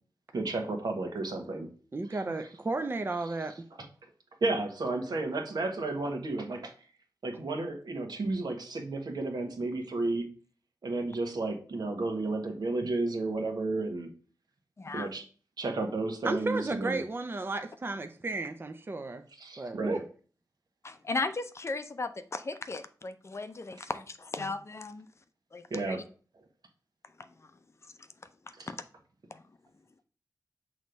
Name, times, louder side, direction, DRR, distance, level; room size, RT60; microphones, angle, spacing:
voice 1, 0.3-1.7 4.4-6.7 7.2-10.3 10.8-14.1 14.9-15.2 15.6-17.0 19.4-20.0 25.7-26.0 28.6-28.7, right 2 dB, 70° right, 1.3 m, -32 dB
voice 2, 1.9-3.5 16.2-19.2 19.6-20.0, right 2 dB, 30° right, 0.6 m, -33 dB
voice 3, 14.8-15.1 20.8-25.1 25.5-26.0 28.7-28.8 29.3-29.4, left 3 dB, 40° left, 0.5 m, -36 dB
6.4 x 3.2 x 5.2 m
wide cardioid pair, 80°, 7 cm